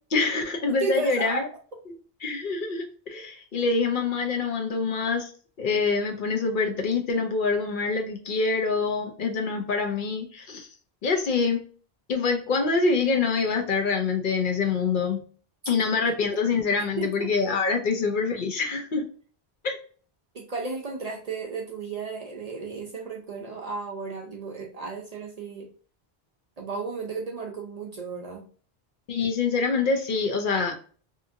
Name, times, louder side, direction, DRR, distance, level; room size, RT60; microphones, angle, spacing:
voice 1, 0.1-1.5 2.2-5.3 5.6-10.7 11.0-11.6 12.1-15.2 15.7-19.0 19.6-19.8 29.1-30.8, left 4 dB, 60° left, 3 dB, 0.7 m, -25 dB
voice 2, 0.8-1.4 17.0-17.3 20.3-25.7 26.6-28.4, right 4 dB, 50° right, 0 dB, 0.5 m, -34 dB
2.8 x 2.6 x 2.4 m, 0.41 s
omnidirectional pair, 1.0 m